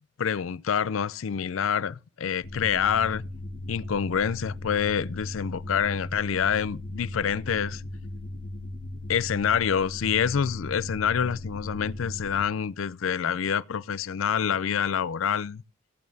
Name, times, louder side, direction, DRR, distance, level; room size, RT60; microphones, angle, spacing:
voice 1, 0.2-3.2 3.7-7.8 9.1-15.6, left 7 dB, 85° left, 0.5 m, -27 dB
sound 1, 2.4-12.4, left 1 dB, 65° left, 1.7 m, -37 dB
17.5 x 9.3 x 2.7 m
head